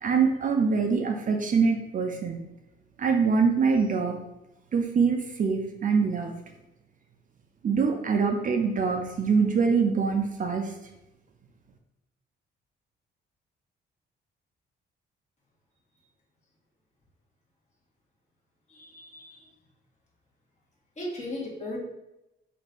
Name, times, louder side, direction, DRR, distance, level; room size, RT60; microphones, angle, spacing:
voice 1, 0.0-2.4 3.0-4.2 4.7-6.3 7.6-10.7, right 5 dB, 40° right, 3 dB, 0.5 m, -24 dB
voice 2, 18.7-19.5 21.0-21.8, left 1 dB, 35° left, -3 dB, 1.4 m, -37 dB
3.0 x 2.6 x 4.4 m, 0.90 s
cardioid pair, 90°, 20 cm